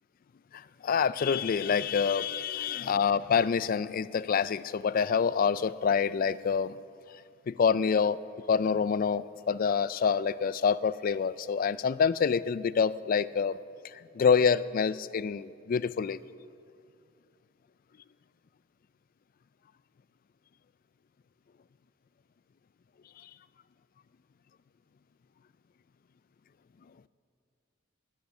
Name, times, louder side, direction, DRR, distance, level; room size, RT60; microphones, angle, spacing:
voice 1, 0.5-6.8 7.5-8.2 8.5-13.6 13.8-16.2 23.2-23.3, left 6 dB, 45° left, 17 dB, 0.3 m, -27 dB
20.0 x 8.0 x 6.1 m, 2.3 s
head